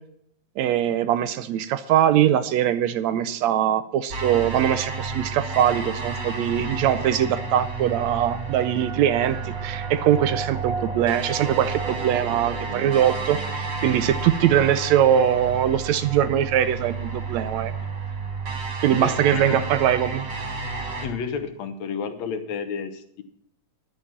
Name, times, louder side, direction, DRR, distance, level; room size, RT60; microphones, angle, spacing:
voice 1, 0.6-17.7 18.8-20.3, right 10 dB, 75° right, 13 dB, 1.8 m, -22 dB
sound 1, 4.1-21.1, right 4 dB, 40° right, 2.6 m, -31 dB
voice 2, 19.0-19.7 21.0-23.2, left 6 dB, 70° left, 9 dB, 2.3 m, -31 dB
11.0 x 8.6 x 7.3 m, 0.71 s
omnidirectional pair, 3.4 m